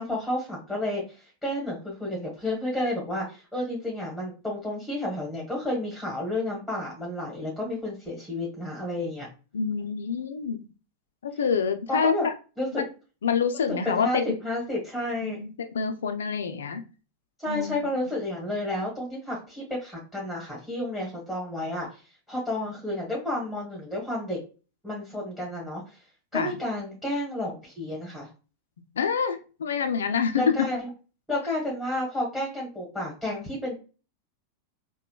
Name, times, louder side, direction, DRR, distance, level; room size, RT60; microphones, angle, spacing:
voice 1, 0.0-9.3 11.9-12.3 12.6-12.7 13.8-15.4 17.4-24.4 24.8-26.0 26.3-28.3 30.4-30.9 31.3-33.8, left 1 dB, ahead, -3 dB, 1.2 m, -31 dB
voice 2, 9.5-10.6 11.2-12.3 12.7-12.8 13.2-14.4 15.2-16.8 17.5-17.8 26.3-26.5 29.0-30.6, left 6 dB, 70° left, 7 dB, 0.4 m, -27 dB
3.8 x 2.1 x 2.3 m, 0.34 s
figure-of-eight pair, 90°, 0 cm